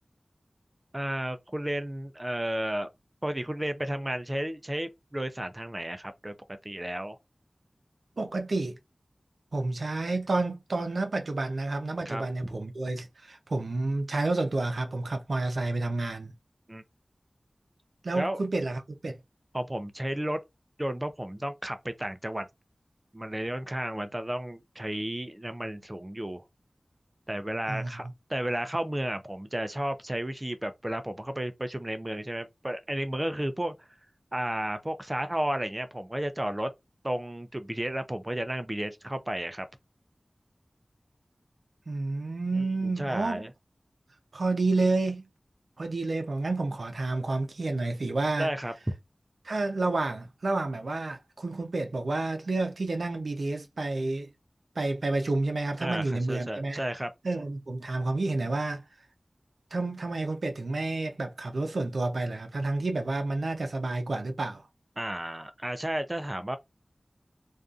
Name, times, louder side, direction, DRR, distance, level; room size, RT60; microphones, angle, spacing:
voice 1, 0.9-2.9 3.2-6.3 6.6-7.2 12.1-12.2 16.7-16.8 18.1-18.4 19.5-20.4 20.8-22.5 23.1-26.4 27.3-28.0 28.3-33.9 34.3-36.7 37.0-39.7 42.5-43.5 48.4-48.7 55.8-57.1 65.0-66.6, right 1 dB, 25° right, 0.4 m, -33 dB
voice 2, 8.2-8.8 9.5-16.3 18.0-19.2 27.7-27.9 41.9-43.4 44.3-45.3 45.8-48.5 49.4-54.3 54.8-56.8 57.2-58.8 59.7-64.7, right 2 dB, 85° right, 0.5 m, -30 dB
2.5 x 2.3 x 2.3 m
wide cardioid pair, 50°, 0 cm